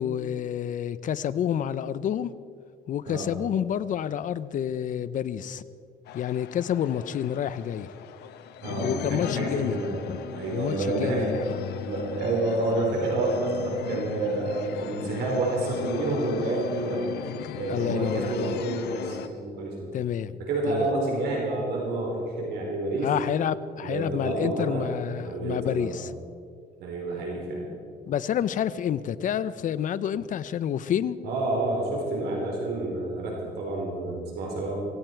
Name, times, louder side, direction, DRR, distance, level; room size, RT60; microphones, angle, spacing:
voice 1, 0.0-2.3 2.9-5.6 6.1-7.9 8.8-9.8 10.1-10.2 10.5-11.5 15.0-15.1 17.7-18.6 19.9-20.4 20.7-20.9 23.0-26.2 28.1-31.2, left 9 dB, 50° left, 15 dB, 0.7 m, -29 dB
sound 1, 6.1-19.3, left 10 dB, 75° left, 1.0 m, -37 dB
voice 2, 8.6-10.0 10.3-11.3 11.8-17.0 17.6-19.9 20.4-23.1 23.8-24.9 25.2-26.1 26.8-27.7 31.2-34.8, right 2 dB, 75° right, -1 dB, 4.3 m, -29 dB
17.5 x 17.0 x 4.6 m, 2.2 s
cardioid pair, 110°, 17 cm